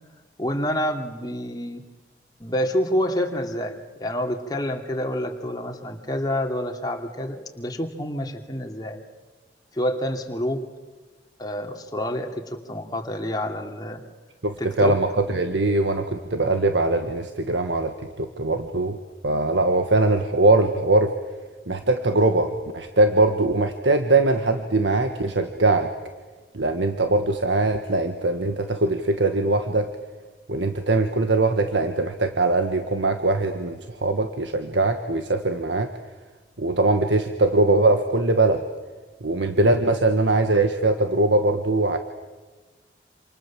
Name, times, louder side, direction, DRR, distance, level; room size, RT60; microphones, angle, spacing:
voice 1, 0.4-1.8 2.4-9.0 9.7-10.6 11.4-14.0 14.6-14.9, equal, 20° left, 3 dB, 2.7 m, -28 dB
voice 2, 14.4-19.0 19.2-21.1 21.7-25.9 26.5-29.9 30.5-35.9 36.6-38.7 39.2-42.0, right 2 dB, 85° right, 7 dB, 1.6 m, -21 dB
28.0 x 28.0 x 7.5 m, 1.3 s
head